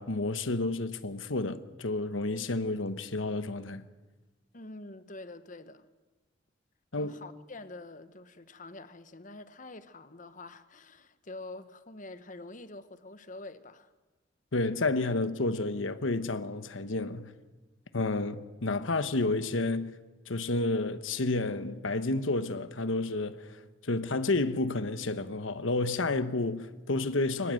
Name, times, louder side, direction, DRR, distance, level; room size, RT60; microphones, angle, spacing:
voice 1, 0.0-3.8 6.9-7.1 14.5-17.3 17.9-19.9 20.3-27.5, left 2 dB, 80° left, 1.1 m, -30 dB
voice 2, 4.5-5.9 7.0-13.9, left 2 dB, 40° left, 1.2 m, -46 dB
23.5 x 20.0 x 7.7 m
head